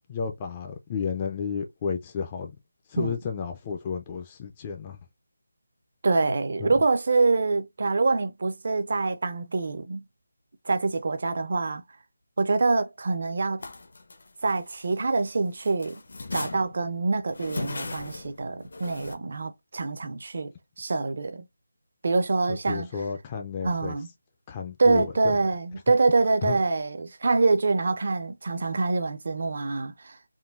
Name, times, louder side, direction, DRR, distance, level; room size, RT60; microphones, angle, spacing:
voice 1, 0.1-2.6 2.9-5.0 6.6-6.7 22.5-23.9 24.5-25.4 26.4-26.6, left 6 dB, 20° left, 0.4 m, -32 dB
voice 2, 6.0-10.0 10.6-11.8 12.4-13.6 14.4-16.0 16.3-21.4 22.0-22.9 23.6-24.1 24.8-30.2, right 3 dB, 45° right, 0.5 m, -25 dB
sound 1, 13.6-15.3 15.6-19.2, left 3 dB, 55° left, 0.6 m, -37 dB
3.7 x 2.2 x 2.3 m
figure-of-eight pair, 170°, 0 cm